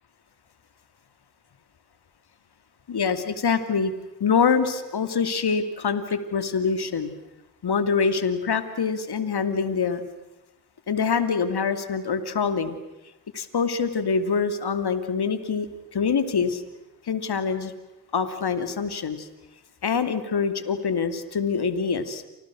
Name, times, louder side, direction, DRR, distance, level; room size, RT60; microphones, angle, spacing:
voice 1, 2.9-3.9 4.2-7.1 7.6-10.0 10.9-12.7 13.3-15.7 15.9-16.6 17.1-17.7 18.1-19.3 19.8-22.2, left 5 dB, 60° left, 10 dB, 2.9 m, -25 dB
29.5 x 26.0 x 6.3 m, 1.0 s
supercardioid pair, 50°, 43 cm